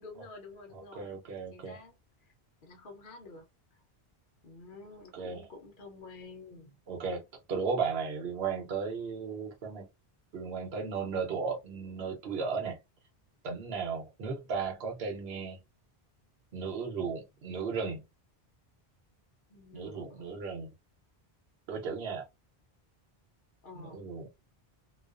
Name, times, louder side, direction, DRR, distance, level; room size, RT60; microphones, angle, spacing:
voice 1, 0.0-1.2 1.5-1.9 2.6-3.5 4.4-6.8 19.5-20.3 23.6-24.0, left 3 dB, 55° left, 0.9 m, -49 dB
voice 2, 0.7-1.8 5.1-5.5 6.9-9.9 10.3-12.8 13.4-15.6 16.5-18.0 19.7-20.7 21.7-22.2 23.7-24.3, right 5 dB, 70° right, 1.0 m, -35 dB
2.3 x 2.3 x 2.3 m
omnidirectional pair, 1.1 m